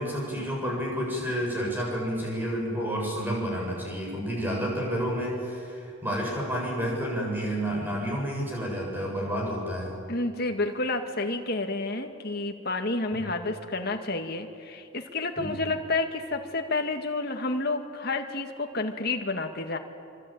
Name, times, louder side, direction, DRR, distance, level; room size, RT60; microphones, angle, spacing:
voice 1, 0.0-9.9 13.1-13.2 15.4-15.6, equal, 10° right, -2 dB, 7.5 m, -30 dB
voice 2, 10.1-19.8, left 2 dB, 50° left, 4 dB, 2.1 m, -30 dB
25.5 x 25.5 x 9.0 m, 2.5 s
head